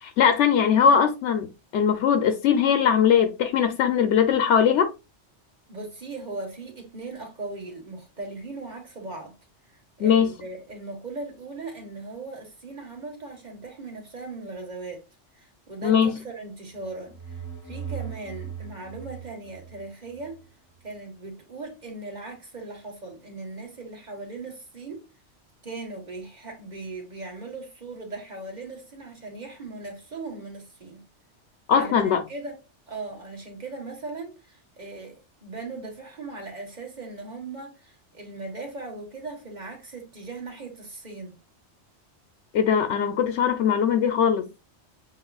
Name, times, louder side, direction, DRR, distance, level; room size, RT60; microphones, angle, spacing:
voice 1, 0.0-4.9 10.0-10.3 15.8-16.1 31.7-32.2 42.5-44.5, left 7 dB, 80° left, 0.9 m, -20 dB
voice 2, 5.7-9.4 10.0-15.0 15.3-20.4 20.8-25.1 25.6-31.1 31.7-32.6 32.9-41.4, right 3 dB, 40° right, 1.5 m, -38 dB
sound 1, 16.8-20.4, right 8 dB, 15° left, 0.9 m, -39 dB
7.3 x 2.5 x 2.3 m
omnidirectional pair, 1.2 m